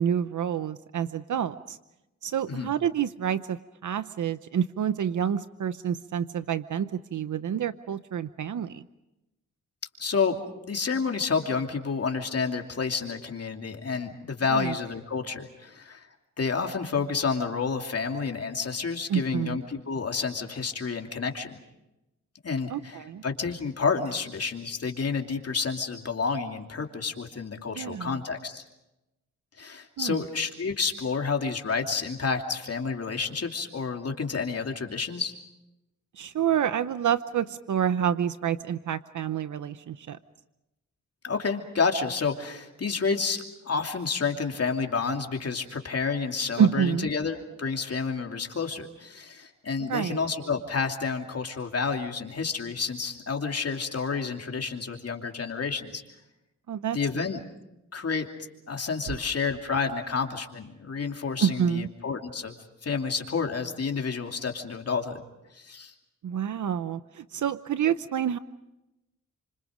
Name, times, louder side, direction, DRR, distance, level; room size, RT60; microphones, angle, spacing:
voice 1, 0.0-1.8 2.2-8.8 14.5-14.7 19.1-19.6 22.7-23.2 27.7-28.2 30.0-30.2 36.1-40.2 46.6-47.1 49.9-50.2 56.7-57.0 61.4-61.9 66.2-68.4, right 8 dB, 75° right, 12 dB, 0.8 m, -28 dB
voice 2, 10.0-16.1 16.4-21.6 22.4-28.6 29.6-35.3 41.2-56.0 56.9-57.4 57.9-58.3 58.7-62.5 62.8-65.2 65.5-65.9, left 5 dB, 50° left, 3 dB, 2.8 m, -30 dB
30.0 x 26.0 x 5.1 m, 0.93 s
cardioid pair, 90°, 31 cm